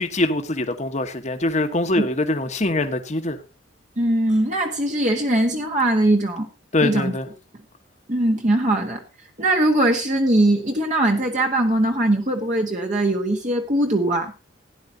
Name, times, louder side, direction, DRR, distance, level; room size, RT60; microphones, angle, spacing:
voice 1, 0.0-3.4 6.7-7.3, left 2 dB, 35° left, 1.3 m, -23 dB
voice 2, 4.0-6.5 6.8-7.1 8.1-9.0 9.4-14.3, right 1 dB, 40° right, 1.5 m, -20 dB
17.0 x 10.5 x 2.8 m
head